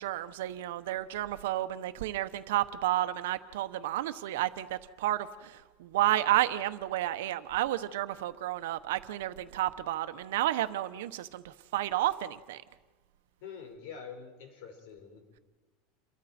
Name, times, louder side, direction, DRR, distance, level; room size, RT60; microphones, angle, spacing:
voice 1, 0.0-12.6, right 14 dB, 85° right, 11 dB, 1.1 m, -31 dB
voice 2, 13.4-15.4, left 6 dB, 60° left, 4 dB, 5.1 m, -46 dB
28.5 x 23.0 x 4.4 m, 1.3 s
supercardioid pair, 170°, 0 cm